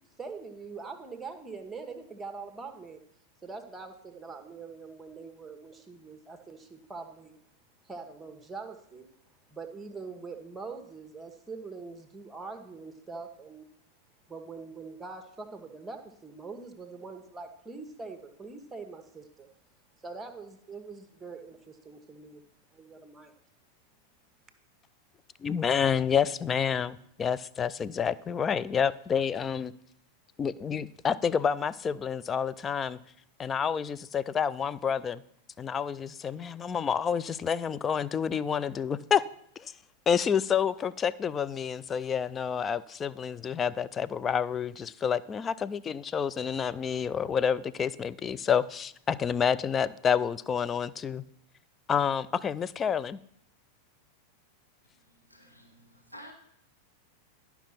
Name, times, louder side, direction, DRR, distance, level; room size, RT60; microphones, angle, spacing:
voice 1, 0.2-3.0 3.4-7.4 7.8-9.1 9.5-13.7 14.3-19.5 20.0-22.4 22.7-23.3, right 4 dB, 10° right, 6 dB, 1.2 m, -43 dB
voice 2, 25.4-29.7 30.4-33.0 33.4-35.2 35.6-39.2 39.6-39.7 40.1-51.2 51.9-53.2, left 7 dB, 20° left, 16 dB, 0.4 m, -29 dB
voice 3, 54.8-56.3, equal, 90° left, 0 dB, 1.5 m, -51 dB
11.5 x 5.7 x 5.7 m, 0.69 s
figure-of-eight pair, 90°, 0 cm